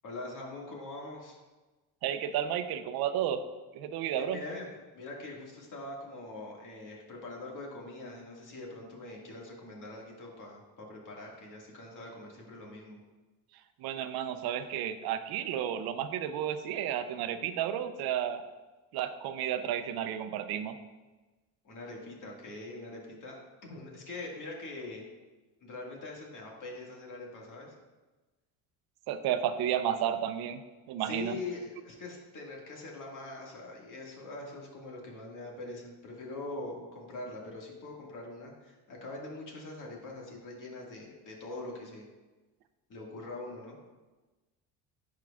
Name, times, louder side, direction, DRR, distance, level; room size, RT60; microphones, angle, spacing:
voice 1, 0.0-1.4 4.1-4.7 4.9-13.0 21.6-23.4 23.6-25.0 25.6-27.7 31.0-42.1 42.9-43.8, left 2 dB, 50° left, -2 dB, 2.0 m, -43 dB
voice 2, 2.0-3.4 3.7-4.4 13.8-18.4 18.9-20.8 29.1-30.6 30.9-31.3, right 10 dB, 70° right, 10 dB, 0.6 m, -32 dB
10.5 x 4.7 x 2.4 m, 1.2 s
supercardioid pair, 90°, 39 cm